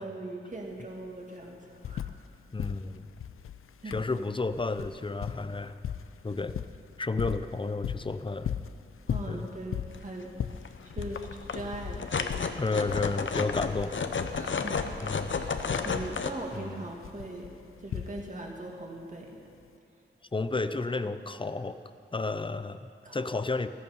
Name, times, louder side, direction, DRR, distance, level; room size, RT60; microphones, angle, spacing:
voice 1, 0.0-2.0 3.8-4.0 9.1-10.3 10.6-12.5 14.3-15.0 15.3-17.5 17.8-19.4 21.0-21.2 23.0-23.2, right 2 dB, 35° right, -1 dB, 2.3 m, -40 dB
sound 1, 0.5-0.6 0.9-2.3 2.6-18.6 19.6-19.7, left 9 dB, 85° left, 0.4 m, -38 dB
voice 2, 2.5-3.1 3.9-5.8 6.2-6.6 7.0-8.5 9.3-9.5 12.6-13.9 15.0-15.3 16.5-16.8 20.3-21.8 22.1-23.7, left 3 dB, 25° left, 12 dB, 0.6 m, -32 dB
sound 2, 9.9-10.0 10.4-10.7 10.9-16.3, left 5 dB, 65° left, 0.8 m, -32 dB
14.5 x 14.0 x 5.6 m, 2.4 s
wide cardioid pair, 85°, 21 cm